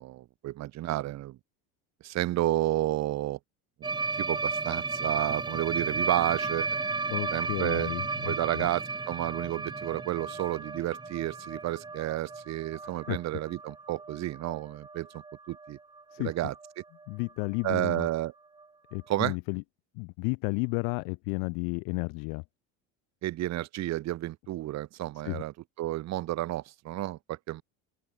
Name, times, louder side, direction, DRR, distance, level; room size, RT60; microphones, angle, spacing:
voice 1, 0.0-1.4 2.0-3.4 4.1-6.7 7.3-7.9 8.3-15.8 16.2-16.5 17.6-18.3 19.1-19.4 23.2-27.6, right 15 dB, 45° right, 3.8 m, -31 dB
sound 1, 3.8-15.7 16.0-16.2 16.5-16.7 17.0-17.1 17.4-17.5 18.6-18.7, right 3 dB, 10° right, 3.2 m, -34 dB
voice 2, 7.1-8.7 12.8-13.2 16.1-16.3 17.1-18.1 18.9-19.6 20.0-22.4 25.2-25.4, left 35 dB, 70° left, 1.3 m, -32 dB
open air
cardioid pair, 150°, 36 cm